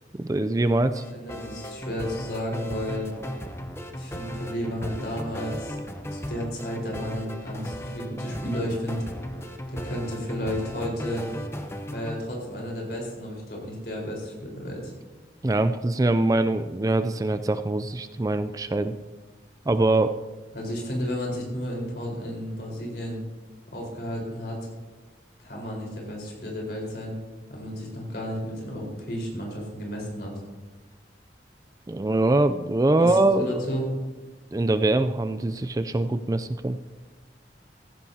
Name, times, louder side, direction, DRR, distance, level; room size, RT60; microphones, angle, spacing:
voice 1, 0.2-1.0 15.4-18.9 19.7-20.1 31.9-33.6 34.5-36.8, right 2 dB, 20° right, 10 dB, 0.3 m, -23 dB
sound 1, 0.9-12.2, equal, 15° left, 0.8 m, -36 dB
voice 2, 1.1-3.1 3.9-5.8 6.1-9.0 9.7-11.3 11.9-14.9 20.5-23.2 23.7-24.6 25.4-27.2 27.5-30.3 33.0-33.8, equal, 60° left, -2 dB, 4.4 m, -32 dB
15.5 x 15.0 x 2.8 m, 1.2 s
head